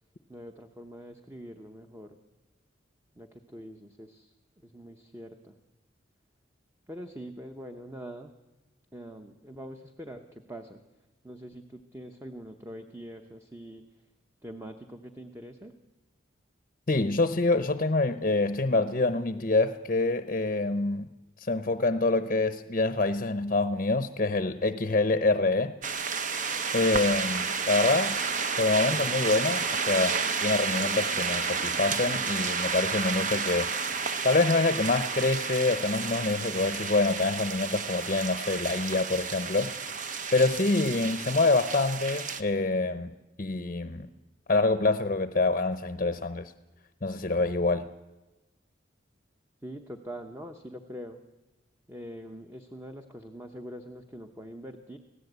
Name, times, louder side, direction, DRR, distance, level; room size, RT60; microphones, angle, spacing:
voice 1, 0.3-2.2 3.2-4.3 4.6-5.6 6.9-8.3 8.9-10.8 11.2-13.9 14.4-15.8 49.6-51.2 51.9-55.0, equal, 15° right, 5 dB, 0.9 m, -44 dB
voice 2, 16.9-21.1 21.4-25.7 26.7-28.2 28.6-33.7 34.2-39.7 40.3-43.1 43.4-44.1 44.5-46.5 47.0-47.9, left 3 dB, 40° left, 10 dB, 0.7 m, -26 dB
sound 1, 25.8-42.4, right 5 dB, 40° right, 0.9 m, -31 dB
25.5 x 16.5 x 8.1 m, 1.1 s
head